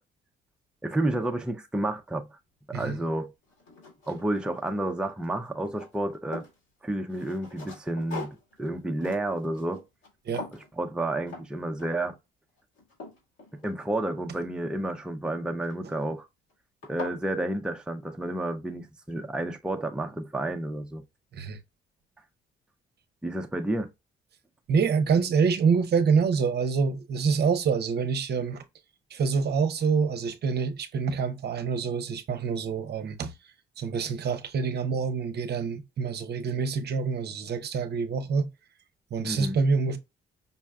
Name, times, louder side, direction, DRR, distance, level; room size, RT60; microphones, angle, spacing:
voice 1, 0.8-2.4 2.7-3.3 4.1-6.4 6.8-9.8 10.8-12.2 13.6-16.3 16.9-21.0 23.2-23.9 39.2-39.6, right 1 dB, 5° right, 0.5 m, -30 dB
sound 1, 2.9-3.0 3.5-4.9 5.2-6.6 7.1-10.1 10.3-10.7 11.3-11.5 11.8-12.2 12.6-14.2 15.6-16.0 16.5-16.6 16.8-17.2, left 3 dB, 75° left, 2.1 m, -42 dB
voice 2, 24.7-28.6 29.1-33.3 33.8-38.5 39.1-40.0, right 5 dB, 55° right, 0.7 m, -26 dB
5.4 x 2.3 x 2.2 m
cardioid pair, 90°, 20 cm